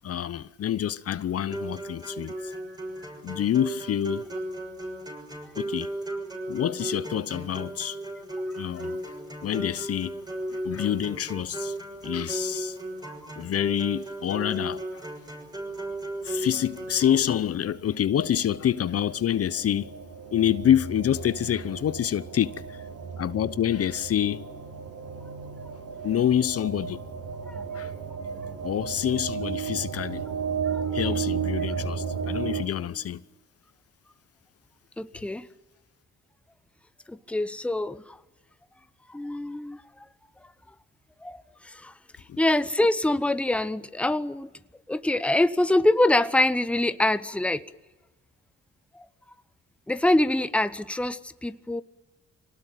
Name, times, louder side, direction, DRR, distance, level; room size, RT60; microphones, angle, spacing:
voice 1, 0.0-2.5 3.2-4.3 5.6-5.9 6.5-8.0 8.6-9.0 9.4-10.2 10.5-11.8 12.0-12.8 13.3-15.0 16.2-19.9 20.3-22.8 23.2-24.5 26.0-27.0 27.7-27.9 28.6-30.2 30.9-33.2 42.3-42.4, left 10 dB, 50° left, 0.8 m, -27 dB
sound 1, 1.5-17.5, right 1 dB, 15° right, 6.5 m, -36 dB
sound 2, 16.5-32.6, right 6 dB, 85° right, 5.5 m, -34 dB
voice 2, 35.0-35.5 37.1-38.2 39.1-39.8 41.2-41.9 42.4-44.5 44.9-47.6 49.0-49.1 49.9-51.8, left 1 dB, 5° left, 0.9 m, -25 dB
25.5 x 18.5 x 9.0 m
cardioid pair, 90°, 30 cm